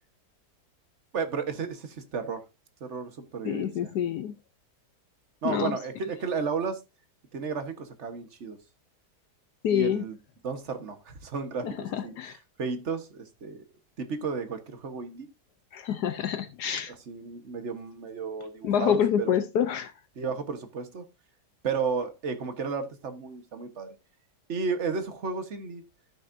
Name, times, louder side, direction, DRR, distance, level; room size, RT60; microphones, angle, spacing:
voice 1, 1.1-2.4 2.8-3.9 5.4-6.8 7.3-8.6 9.7-10.2 10.4-13.6 14.0-15.3 16.9-19.4 20.1-21.0 21.6-23.9 24.5-25.8, right 5 dB, 45° right, 1.5 m, -33 dB
voice 2, 3.4-4.3 5.4-5.7 9.6-10.0 11.6-12.3 15.7-16.9 18.6-19.9, left 8 dB, 75° left, 1.3 m, -27 dB
13.5 x 6.3 x 2.6 m
omnidirectional pair, 1.8 m